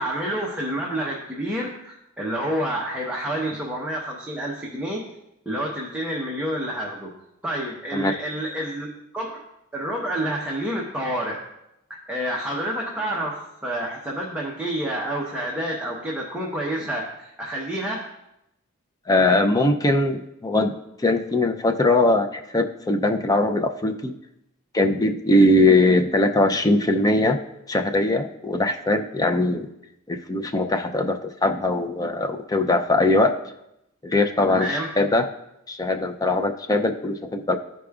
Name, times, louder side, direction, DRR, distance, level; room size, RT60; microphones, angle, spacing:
voice 1, 0.0-5.1 5.5-7.1 7.4-8.9 9.1-9.5 9.7-11.4 11.9-18.0 34.5-34.9, right 1 dB, 5° right, -4 dB, 0.9 m, -28 dB
voice 2, 19.1-24.1 24.7-27.4 27.7-29.7 30.1-33.4 34.0-35.2 35.7-37.6, left 2 dB, 15° left, 5 dB, 0.5 m, -21 dB
13.5 x 4.9 x 2.4 m, 0.84 s
head